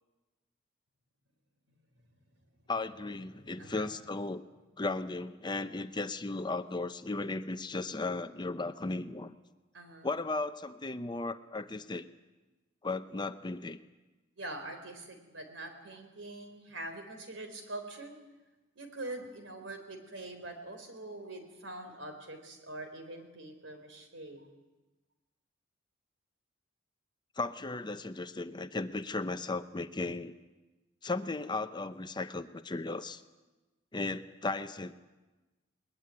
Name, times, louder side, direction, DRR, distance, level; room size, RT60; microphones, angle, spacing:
voice 1, 2.7-4.4 4.8-9.3 10.0-12.0 12.8-13.8 27.4-30.3 31.0-33.2 33.9-34.9, left 3 dB, 25° left, 11 dB, 0.7 m, -36 dB
voice 2, 3.3-3.9 9.7-10.1 14.4-18.2 18.8-24.5, right 2 dB, 70° right, 7 dB, 4.2 m, -44 dB
21.0 x 20.0 x 9.7 m, 1.2 s
head